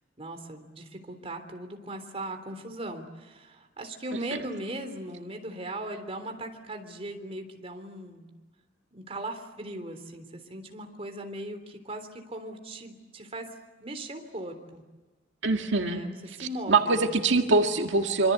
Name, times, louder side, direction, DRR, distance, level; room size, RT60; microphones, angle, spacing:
voice 1, 0.2-8.3 8.9-13.5 13.8-14.8 15.8-17.4, right 1 dB, 35° right, 5 dB, 3.5 m, -39 dB
voice 2, 15.4-16.0 16.3-18.3, right 3 dB, 80° right, 4 dB, 1.9 m, -24 dB
26.0 x 26.0 x 8.3 m, 1.3 s
head